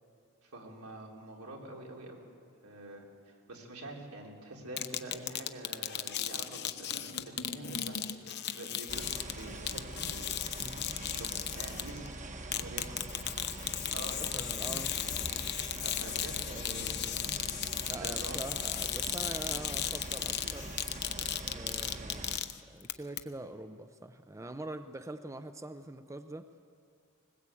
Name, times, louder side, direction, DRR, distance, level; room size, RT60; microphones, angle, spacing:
voice 1, 0.4-2.2 2.6-12.1 12.4-12.9 13.5-14.9 15.8-17.1 18.0-18.4, right 2 dB, 80° right, 0 dB, 3.9 m, -47 dB
sound 1, 4.8-12.1 12.5-22.9 23.2-23.3, left 11 dB, 50° left, 0.9 m, -36 dB
sound 2, 8.9-22.4, right 2 dB, 35° right, 1.3 m, -43 dB
voice 2, 10.6-10.9 12.8-12.9 14.2-14.9 15.5-15.7 16.5-17.4 17.9-20.7 21.3-22.3 22.6-26.5, right 2 dB, 15° right, 9 dB, 0.6 m, -44 dB
20.5 x 20.0 x 8.5 m, 2.4 s
head